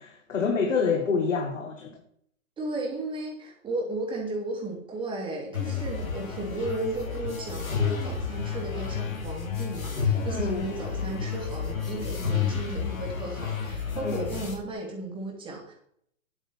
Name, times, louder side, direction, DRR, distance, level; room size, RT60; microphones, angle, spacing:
voice 1, 0.0-2.0 10.3-10.7 13.9-14.3, left 5 dB, 70° left, 1.8 m, -27 dB
voice 2, 2.6-15.7, right 2 dB, 10° right, 3.0 m, -35 dB
sound 1, 5.5-14.6, left 6 dB, 90° left, 2.4 m, -31 dB
9.8 x 8.9 x 4.4 m
hypercardioid pair, 130°, 40 cm